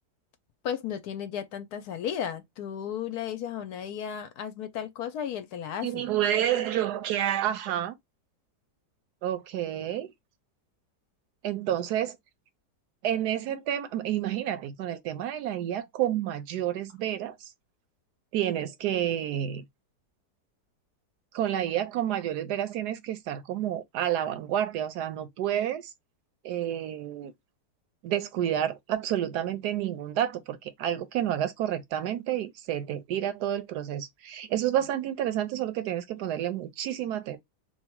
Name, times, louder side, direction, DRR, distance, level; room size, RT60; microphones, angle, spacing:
voice 1, 0.6-6.1, left 9 dB, 70° left, 1.0 m, -34 dB
voice 2, 5.8-8.0 9.2-10.1 11.4-12.2 13.0-17.5 18.3-19.6 21.3-25.9 26.4-27.3 28.0-37.4, right 11 dB, 75° right, 1.1 m, -29 dB
3.1 x 2.3 x 4.3 m
omnidirectional pair, 1.9 m